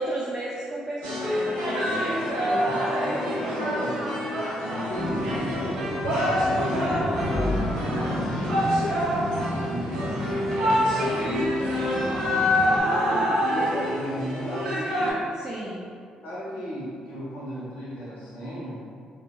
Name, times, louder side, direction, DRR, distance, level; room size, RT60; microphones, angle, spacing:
voice 1, 0.0-1.9 11.2-11.7 15.3-15.8, right 1 dB, 30° right, -6 dB, 0.4 m, -33 dB
sound 1, 1.0-15.1, equal, 85° right, 0.5 m, -26 dB
voice 2, 2.5-4.0 4.5-6.0 6.2-10.2 10.6-11.4 12.7-14.9 16.2-18.8, equal, 70° left, -7 dB, 0.6 m, -35 dB
Boat Water vehicle, 5.0-12.8, left 1 dB, 25° left, 0.6 m, -32 dB
2.7 x 2.1 x 2.3 m, 2.2 s
hypercardioid pair, 45°, 3 cm